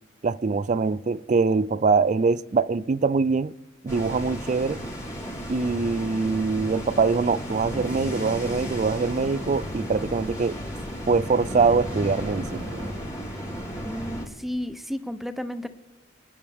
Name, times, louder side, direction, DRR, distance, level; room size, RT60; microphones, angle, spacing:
voice 1, 0.2-3.5 3.8-4.8 5.5-10.6 11.1-12.7, right 4 dB, 35° right, 0.3 m, -23 dB
sound 1, 3.9-14.3, equal, 20° left, 3.6 m, -34 dB
sound 2, 7.4-12.9, equal, 60° right, 2.4 m, -41 dB
voice 2, 13.8-15.7, equal, ahead, 0.7 m, -32 dB
27.5 x 10.0 x 3.5 m
head